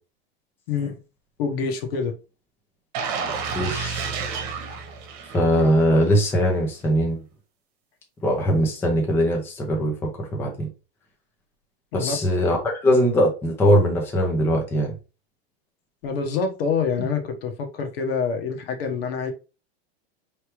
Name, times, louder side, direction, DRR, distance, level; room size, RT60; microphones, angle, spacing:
voice 1, 0.7-1.0 1.4-2.2 11.9-12.2 16.0-19.3, left 5 dB, 70° left, 1.2 m, -26 dB
sound 1, 2.9-5.9 6.3-6.5, right 5 dB, 40° right, 1.1 m, -30 dB
voice 2, 3.5-4.1 5.3-7.2 8.2-10.7 11.9-14.9, equal, 5° left, 0.6 m, -21 dB
4.5 x 3.3 x 3.1 m
supercardioid pair, 170°, 31 cm